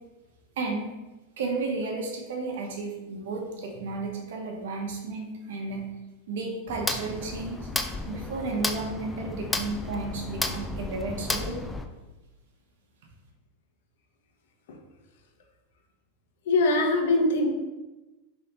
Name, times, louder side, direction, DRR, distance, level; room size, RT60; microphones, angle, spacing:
voice 1, 0.6-0.9 1.4-5.8 6.3-7.7 8.1-11.6, right 3 dB, 75° right, 1 dB, 1.0 m, -33 dB
sound 1, 6.7-11.9, left 2 dB, 10° left, 0.3 m, -33 dB
voice 2, 16.5-17.5, left 2 dB, 75° left, 3 dB, 0.8 m, -22 dB
3.5 x 3.3 x 3.8 m, 1.1 s
supercardioid pair, 140°, 0 cm